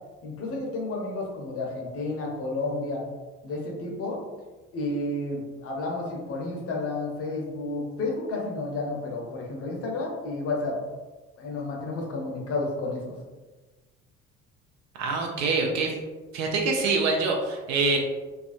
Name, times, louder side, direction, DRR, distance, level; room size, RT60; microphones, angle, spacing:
voice 1, 0.2-3.0 3.4-4.2 4.7-10.8 11.4-13.1, left 2 dB, 40° left, -1 dB, 0.7 m, -31 dB
voice 2, 15.0-15.9 16.3-18.0, right 3 dB, 45° right, 1 dB, 0.5 m, -25 dB
2.4 x 2.2 x 2.4 m, 1.3 s
figure-of-eight pair, 55°, 36 cm